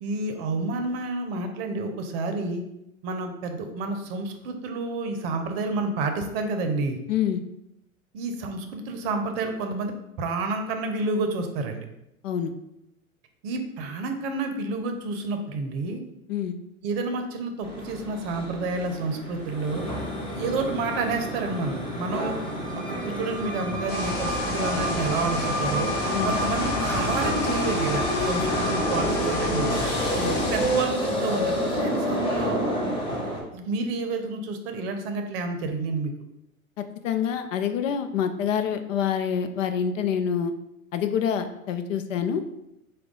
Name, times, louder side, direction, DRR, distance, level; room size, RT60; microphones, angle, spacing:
voice 1, 0.0-2.6 3.0-7.0 8.1-11.9 13.4-16.0 16.8-19.9 20.3-22.4 22.7-25.9 26.2-29.9 30.4-32.6 33.5-36.1, right 3 dB, 45° right, 5 dB, 0.7 m, -29 dB
voice 2, 7.1-7.4 12.2-12.5 16.3-16.6 26.1-26.3 30.2-30.4 36.8-40.5 40.9-42.4, left 8 dB, 65° left, 9 dB, 0.6 m, -26 dB
sound 1, 17.6-33.4, equal, 10° left, 1.1 m, -28 dB
sound 2, 23.9-30.8, left 2 dB, 35° left, 1.0 m, -31 dB
4.6 x 2.3 x 3.7 m, 0.84 s
hypercardioid pair, 105°, 42 cm